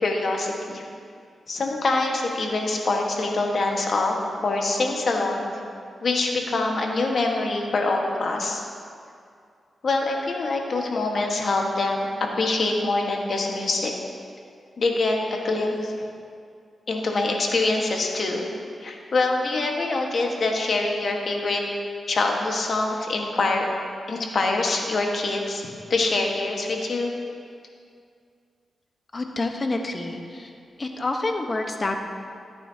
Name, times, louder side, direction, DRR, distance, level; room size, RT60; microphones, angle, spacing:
voice 1, 0.0-0.8 1.5-4.1 4.4-5.5 6.0-8.6 9.8-13.9 14.8-16.1 16.9-18.5 18.8-21.6 22.1-23.6 24.1-27.1, left 3 dB, 60° left, 1 dB, 1.4 m, -25 dB
voice 2, 29.1-30.5 30.8-32.0, left 2 dB, 40° left, 4 dB, 1.1 m, -28 dB
14.0 x 9.2 x 2.8 m, 2.3 s
cardioid pair, 60°, 0 cm